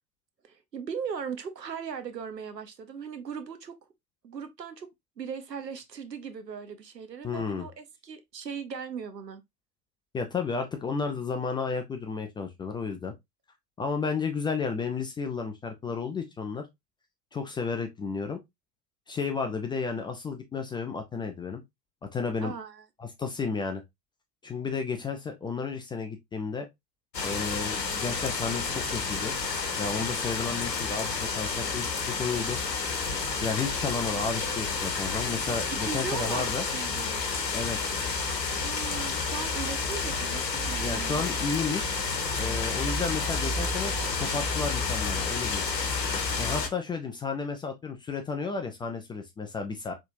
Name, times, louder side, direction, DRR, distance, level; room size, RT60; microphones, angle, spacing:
voice 1, 0.5-3.7 4.2-4.9 5.2-9.4 22.4-22.8 35.7-37.2 38.6-41.3, right 6 dB, 90° right, 0.8 m, -38 dB
voice 2, 7.2-7.7 10.1-13.1 13.8-16.7 17.3-18.4 19.1-21.6 22.0-22.5 23.0-23.8 24.4-26.7 27.2-29.3 29.8-32.6 33.4-36.6 37.5-37.8 40.8-42.0 42.4-45.6 46.4-49.9, left 5 dB, 10° left, 0.4 m, -32 dB
sound 1, 27.1-46.7, left 4 dB, 85° left, 1.0 m, -30 dB
4.4 x 3.4 x 2.6 m
figure-of-eight pair, 80°, 49 cm